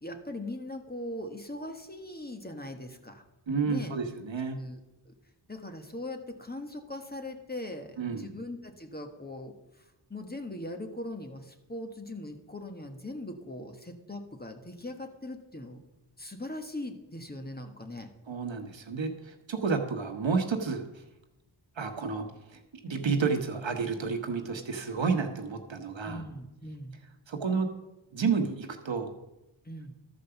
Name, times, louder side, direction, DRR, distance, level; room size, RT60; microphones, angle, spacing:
voice 1, 0.0-3.2 3.6-3.9 4.5-4.8 5.1-5.2 5.5-15.8 16.2-18.1 26.0-27.0 29.6-29.9, left 1 dB, 20° left, 5 dB, 1.4 m, -40 dB
voice 2, 3.5-4.6 8.0-8.3 18.3-20.9 21.8-26.2 27.3-27.7 28.1-29.1, right 5 dB, 70° right, 5 dB, 1.3 m, -30 dB
12.5 x 5.1 x 6.9 m, 0.96 s
cardioid pair, 50°, 47 cm